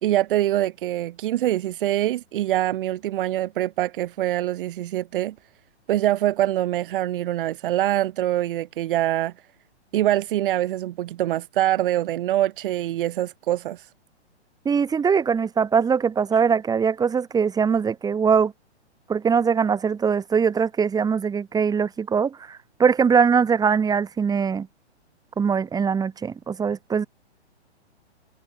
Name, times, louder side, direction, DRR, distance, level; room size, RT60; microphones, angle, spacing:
voice 1, 0.0-5.3 5.9-9.3 9.9-13.9, right 13 dB, 50° right, 2.9 m, -24 dB
voice 2, 14.6-18.5 19.1-24.7 25.4-27.1, right 6 dB, 10° right, 3.1 m, -22 dB
hypercardioid pair, 130°, 34 cm